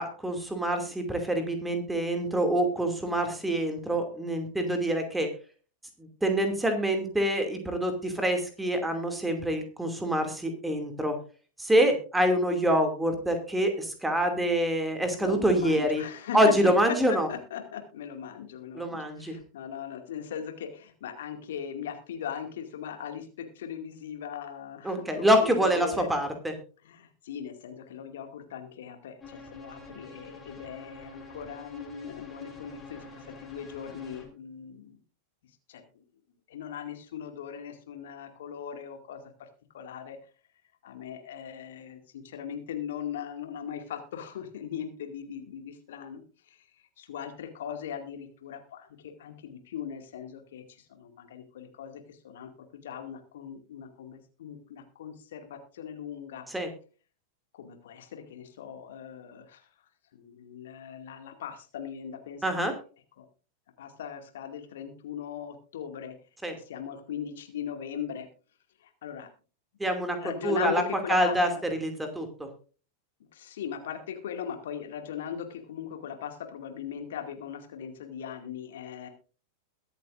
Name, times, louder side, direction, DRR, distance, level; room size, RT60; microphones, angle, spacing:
voice 1, 0.0-5.3 6.0-11.1 11.6-16.0 16.3-17.3 18.7-19.4 24.8-26.5 56.5-56.7 62.4-62.7 66.4-66.5 69.8-70.2 70.4-70.8 71.1-71.5 71.8-72.5, right 1 dB, 5° right, 6 dB, 2.5 m, -26 dB
voice 2, 15.2-16.5 17.1-26.1 26.8-35.0 35.7-36.0 36.5-39.5 39.7-40.2 40.8-56.5 57.5-59.7 60.1-62.8 63.2-63.3 63.8-66.1 66.5-68.3 68.8-69.3 70.1-71.6 73.3-79.1, left 8 dB, 60° left, 5 dB, 2.2 m, -39 dB
sound 1, 29.2-34.3, left 3 dB, 15° left, 3.9 m, -47 dB
22.0 x 8.2 x 2.5 m, 0.37 s
figure-of-eight pair, 90°, 0 cm